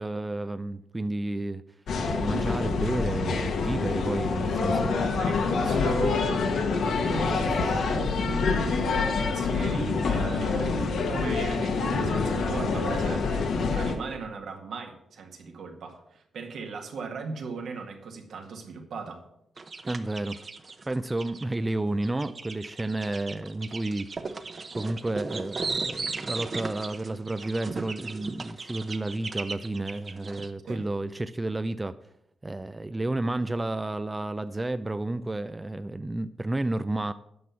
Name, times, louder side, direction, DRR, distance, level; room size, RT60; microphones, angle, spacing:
voice 1, 0.0-1.6 2.1-5.6 6.5-6.7 7.1-7.8 19.8-20.4 20.9-24.1 24.7-32.0 32.4-37.1, right 2 dB, 15° right, 11 dB, 0.4 m, -31 dB
sound 1, 1.9-14.0, left 4 dB, 75° left, 1.3 m, -26 dB
voice 2, 5.1-6.4 7.0-19.2 30.7-30.9, right 4 dB, 75° right, 3 dB, 1.8 m, -37 dB
sound 2, 19.6-21.4 22.0-30.5, right 4 dB, 35° right, 0.8 m, -36 dB
9.4 x 6.0 x 6.9 m, 0.77 s
cardioid pair, 110°, 0 cm